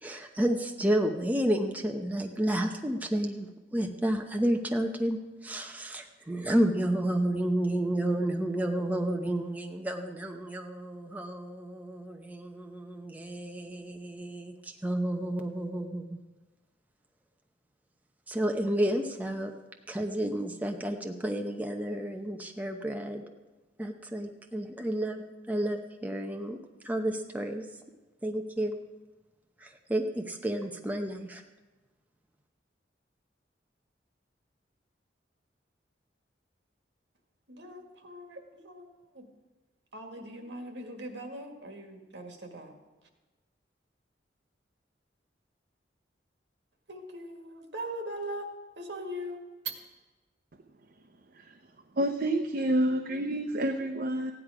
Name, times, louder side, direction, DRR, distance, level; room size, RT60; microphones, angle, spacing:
voice 1, 0.0-16.2 18.3-19.5 19.9-23.3 23.8-26.6 26.8-27.7 28.2-28.8 29.6-31.4, right 1 dB, 10° right, 3 dB, 0.8 m, -31 dB
voice 2, 37.5-38.9 39.1-39.3 39.9-42.7 46.9-48.5 48.8-49.7, right 1 dB, 75° right, 4 dB, 1.9 m, -40 dB
voice 3, 52.0-54.3, right 1 dB, 55° right, 4 dB, 0.7 m, -28 dB
15.0 x 10.0 x 4.9 m, 1.2 s
head